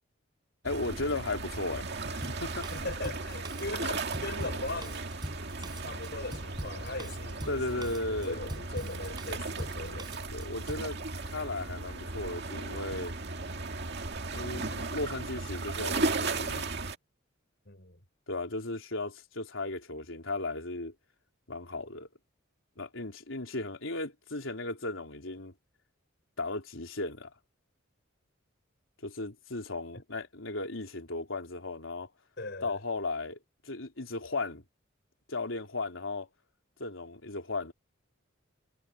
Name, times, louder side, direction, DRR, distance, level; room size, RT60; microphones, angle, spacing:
voice 1, 0.6-2.7 7.5-8.4 10.3-11.0 11.3-13.1 14.3-16.7 18.3-20.9 21.5-22.1 22.8-25.5 26.4-27.3 29.0-32.1 32.6-33.4 33.6-34.6 35.3-36.3 36.8-37.7, left 2 dB, 85° left, 3.6 m, -36 dB
sound 1, 0.6-16.9, right 3 dB, 55° right, 2.1 m, -36 dB
Drum kit, 2.2-10.9, right 1 dB, 20° right, 7.5 m, -43 dB
voice 2, 2.7-5.1 5.6-10.2 17.6-18.0 32.4-32.8, left 2 dB, 60° left, 6.3 m, -40 dB
head